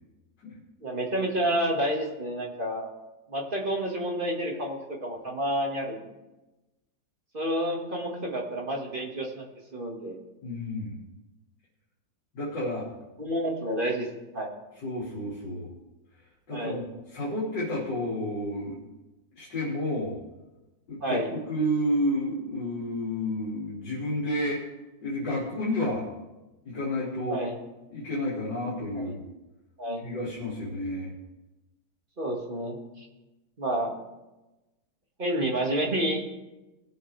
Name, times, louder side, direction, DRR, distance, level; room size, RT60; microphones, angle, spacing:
voice 1, 0.8-2.9 3.3-6.0 7.3-9.4 9.7-10.1 13.2-14.1 14.3-14.5 16.5-16.8 21.0-21.3 27.3-27.5 28.9-29.1 29.8-30.1 32.2-33.1 33.6-34.0 35.2-36.2, right 1 dB, 30° right, -1 dB, 1.9 m, -29 dB
voice 2, 10.4-11.0 12.3-12.9 14.8-15.7 16.5-16.8 17.1-18.9 19.4-20.2 20.9-24.6 25.0-26.0 26.6-27.4 27.9-29.2 30.0-31.1, left 1 dB, 70° left, -6 dB, 3.0 m, -30 dB
19.5 x 7.9 x 3.3 m, 1.0 s
omnidirectional pair, 2.0 m